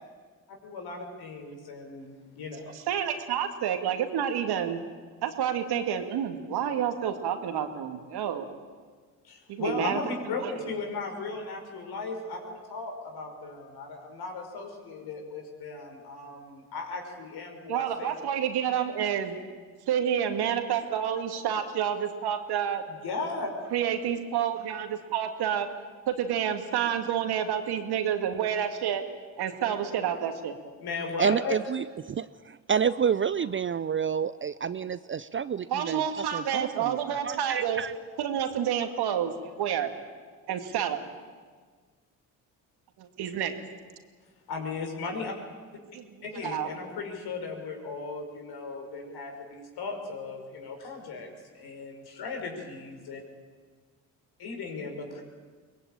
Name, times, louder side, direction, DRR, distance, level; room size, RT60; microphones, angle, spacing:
voice 1, 0.5-2.7 9.2-18.1 22.9-23.5 30.8-31.6 44.5-45.3 46.2-51.3 51.5-53.2 54.4-55.2, left 4 dB, 60° left, 3 dB, 5.5 m, -36 dB
voice 2, 2.9-4.8 5.2-8.5 9.5-10.0 10.4-10.7 17.7-19.4 19.9-22.8 23.7-25.7 26.1-29.0 29.4-30.6 35.7-37.8 38.2-39.9 40.5-41.0 43.0-43.5 46.0-46.1 46.4-46.7, right 9 dB, 65° right, 6 dB, 2.5 m, -29 dB
voice 3, 31.2-37.9, right 7 dB, 30° right, 15 dB, 0.6 m, -29 dB
23.5 x 20.0 x 9.0 m, 1.5 s
hypercardioid pair, 50°, 42 cm